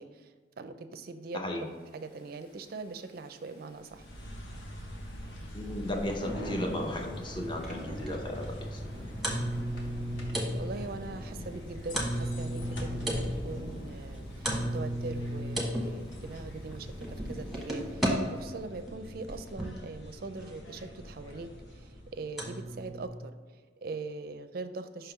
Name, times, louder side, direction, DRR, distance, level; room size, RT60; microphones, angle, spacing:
voice 1, 0.0-1.4 1.9-4.1 10.2-25.1, right 3 dB, 55° right, 9 dB, 0.4 m, -42 dB
voice 2, 1.3-1.6 5.5-8.9, left 1 dB, 25° left, 2 dB, 0.7 m, -35 dB
Thunder / Rain, 1.9-18.4, equal, 55° left, 1.5 m, -48 dB
sound 1, 3.9-22.4, equal, 85° left, 1.0 m, -44 dB
sound 2, 7.3-18.1 18.9-19.8 21.0-21.1 21.5-21.6 22.4-23.1, equal, ahead, 1.1 m, -35 dB
5.6 x 3.6 x 5.7 m, 1.5 s
head